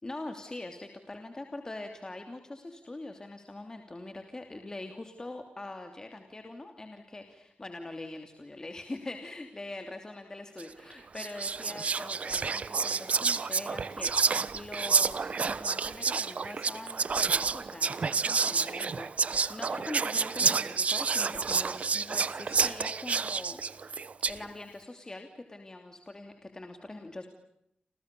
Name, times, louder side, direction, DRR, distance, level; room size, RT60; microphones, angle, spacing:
voice 1, 0.0-23.6 24.3-27.3, left 2 dB, 25° left, 5 dB, 3.0 m, -43 dB
Whispering, 10.6-10.8 11.2-24.4, right 5 dB, 50° right, 1.0 m, -29 dB
29.0 x 28.5 x 6.9 m, 0.75 s
wide cardioid pair, 125°, 3 cm